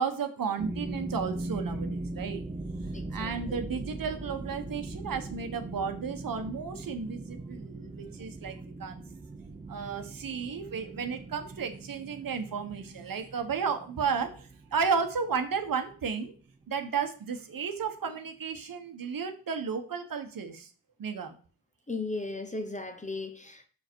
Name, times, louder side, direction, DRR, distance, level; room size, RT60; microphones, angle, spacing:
voice 1, 0.0-2.4 3.1-9.0 9.7-16.3 16.7-20.7 21.0-21.3, right 6 dB, 55° right, 1.1 m, -33 dB
sound 1, 0.6-16.5, right 2 dB, 15° right, 0.7 m, -40 dB
voice 2, 2.9-3.6 18.6-18.7 21.9-23.7, left 3 dB, 20° left, 0.8 m, -37 dB
5.9 x 5.0 x 4.5 m
cardioid pair, 75°, 41 cm